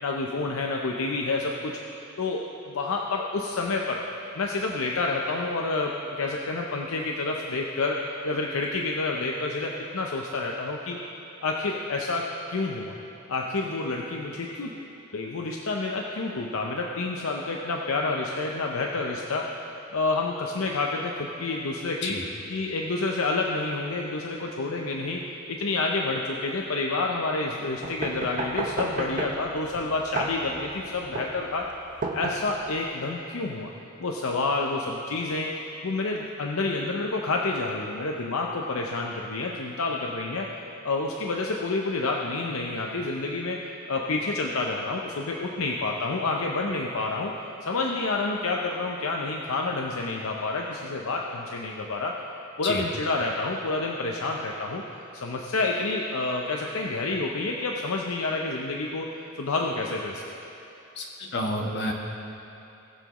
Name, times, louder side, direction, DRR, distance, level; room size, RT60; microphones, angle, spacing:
voice 1, 0.0-1.7 2.2-4.1 4.3-11.0 11.4-13.0 13.3-14.7 15.1-19.5 19.9-22.2 22.5-25.2 25.5-31.7 32.1-33.7 34.0-40.5 40.8-43.6 43.9-47.3 47.6-52.2 52.6-54.8 55.1-59.1 59.4-60.2, left 3 dB, 75° left, 0 dB, 0.6 m, -29 dB
sound 1, 27.8-32.8, right 2 dB, 40° right, 0.8 m, -33 dB
voice 2, 61.0-61.9, left 1 dB, 55° left, 0 dB, 1.3 m, -29 dB
19.5 x 7.0 x 3.0 m, 2.8 s
head